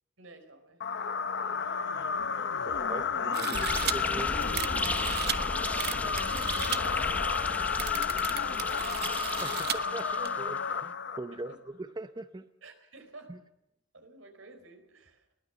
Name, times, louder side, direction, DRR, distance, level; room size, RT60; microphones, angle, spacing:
voice 1, 0.2-0.9 5.6-7.5 8.7-9.8 10.4-10.5 11.3-11.6 12.6-13.4 13.9-15.3, right 2 dB, 80° right, 6 dB, 4.3 m, -52 dB
sound 1, 0.8-11.5, left 6 dB, 60° left, 0.9 m, -32 dB
voice 2, 2.7-4.4 9.4-12.4 13.3-13.4, right 2 dB, 20° right, 9 dB, 0.7 m, -41 dB
sound 2, 3.3-3.9 4.5-5.4 5.8-6.8 7.4-7.5 7.7-9.8 10.3-10.4, right 10 dB, 55° right, 0.9 m, -35 dB
sound 3, 3.5-10.6, left 1 dB, 10° left, 0.8 m, -35 dB
21.5 x 18.5 x 7.0 m, 0.83 s
head